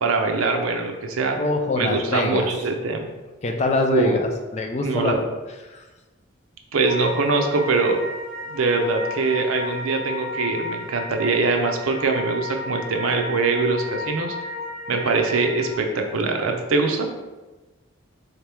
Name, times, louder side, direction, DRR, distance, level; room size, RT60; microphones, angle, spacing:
voice 1, 0.0-1.4 1.7-3.1 3.9-4.2 4.8-5.2 6.7-8.0 8.5-14.3 14.9-17.1, right 3 dB, 80° right, 4 dB, 0.5 m, -23 dB
voice 2, 1.4-2.5 3.4-5.2 5.7-5.8, left 2 dB, 35° left, 3 dB, 0.4 m, -24 dB
sound 1, 6.9-15.7, left 2 dB, 5° left, 1.0 m, -33 dB
3.6 x 2.9 x 3.4 m, 1.2 s
head